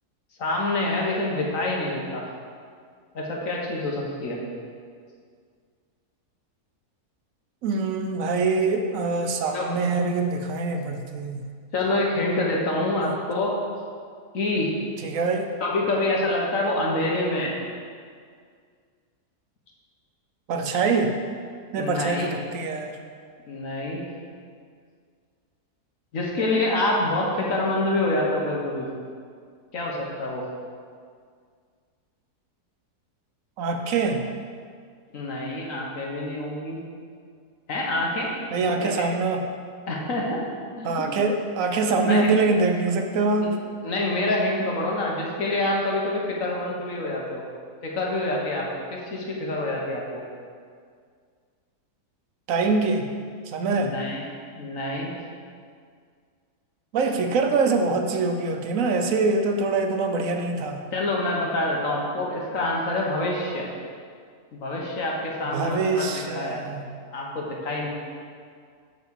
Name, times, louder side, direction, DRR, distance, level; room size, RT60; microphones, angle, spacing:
voice 1, 0.4-2.2 3.1-4.4 9.5-9.7 11.7-13.6 14.3-14.7 15.6-17.5 21.8-22.3 23.5-24.0 26.1-28.9 29.7-30.4 35.1-36.8 37.7-38.3 38.8-39.1 39.9-40.4 40.8-41.1 42.0-42.3 43.4-43.5 43.8-47.4 47.8-50.2 53.8-54.2 54.5-55.1 60.9-63.7 64.5-66.6 67.1-67.9, left 2 dB, 55° left, -2 dB, 1.5 m, -26 dB
voice 2, 7.6-11.4 15.0-15.5 20.5-21.2 21.7-22.9 33.6-34.3 38.5-39.4 40.8-43.6 52.5-53.1 53.5-53.9 56.9-60.8 65.4-66.8, right 3 dB, 65° right, 4 dB, 1.0 m, -24 dB
7.0 x 4.8 x 7.0 m, 2.1 s
omnidirectional pair, 1.7 m